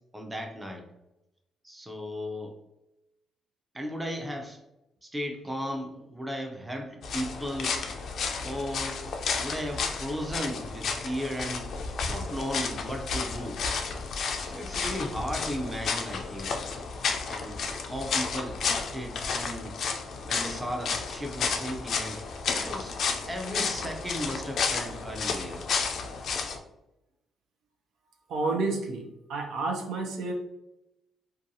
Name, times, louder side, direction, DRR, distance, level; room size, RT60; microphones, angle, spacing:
voice 1, 0.1-0.9 1.6-2.6 3.7-4.6 5.0-7.8 8.4-9.0 9.4-11.7 12.1-13.6 14.5-16.6 17.2-19.8 20.2-23.0 23.3-25.7, equal, 10° right, 3 dB, 0.5 m, -35 dB
sound 1, 7.0-26.6, left 5 dB, 65° left, 0.3 m, -32 dB
voice 2, 28.3-29.0 29.3-30.3, right 3 dB, 80° right, 2 dB, 0.5 m, -29 dB
2.5 x 2.2 x 2.7 m, 0.91 s
cardioid pair, 90°, 0 cm